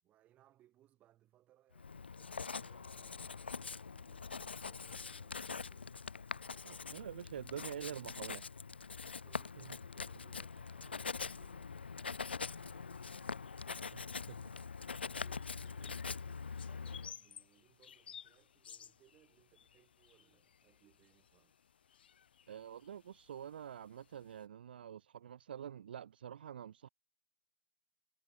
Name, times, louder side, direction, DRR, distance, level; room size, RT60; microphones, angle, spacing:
voice 1, 0.0-6.7 7.2-7.8 9.0-14.1 15.0-21.6, right 13 dB, 25° right, 3.2 m, -69 dB
Writing, 1.8-17.1, left 5 dB, 90° left, 0.6 m, -44 dB
voice 2, 6.6-8.4 9.6-9.7 13.9-14.5 22.5-26.9, right 9 dB, 70° right, 0.4 m, -47 dB
sound 1, 12.2-24.5, left 8 dB, 70° left, 1.7 m, -59 dB
hypercardioid pair, 125°, 6 cm